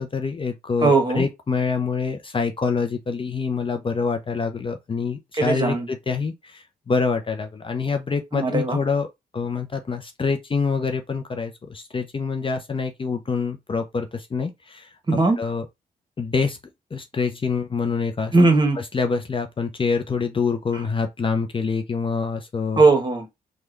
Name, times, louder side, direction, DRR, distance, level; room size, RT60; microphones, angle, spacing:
voice 1, 0.0-9.1 9.3-14.9 15.4-15.6 16.2-16.6 16.9-18.3 18.9-22.8, left 5 dB, 35° left, 0.6 m, -26 dB
voice 2, 0.8-1.3 5.4-5.9 8.3-8.8 15.1-15.4 18.3-18.8 22.8-23.3, right 3 dB, 30° right, 1.2 m, -18 dB
3.4 x 2.3 x 3.1 m
cardioid pair, 75°, 16 cm